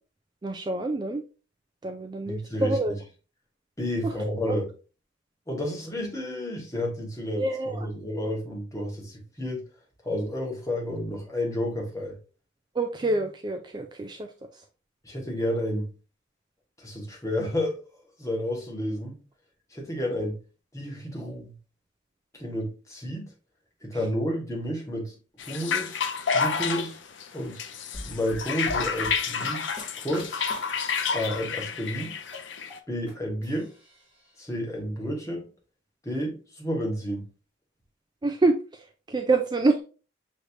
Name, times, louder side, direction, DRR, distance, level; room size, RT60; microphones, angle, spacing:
voice 1, 0.4-1.2 1.8-2.9 4.0-4.1 4.5-4.6 7.4-7.8 12.8-14.3 38.2-38.6 39.1-39.8, right 2 dB, 25° right, 0.4 m, -26 dB
voice 2, 2.2-3.0 3.8-4.7 5.5-9.6 10.0-12.2 15.0-15.9 16.8-17.8 18.2-19.1 19.7-20.4 20.7-21.5 22.3-23.3 23.8-25.2 25.5-26.0 26.3-27.0 27.3-27.6 28.0-29.7 30.0-30.5 31.1-32.2 32.9-33.7 34.4-35.5 36.0-37.3, equal, 15° left, 1.5 m, -31 dB
sound 1, 25.4-32.8, left 5 dB, 75° left, 0.6 m, -30 dB
sound 2, 27.9-31.3 31.6-33.1 33.4-34.3, left 1 dB, 5° right, 2.0 m, -44 dB
6.4 x 3.2 x 2.6 m
head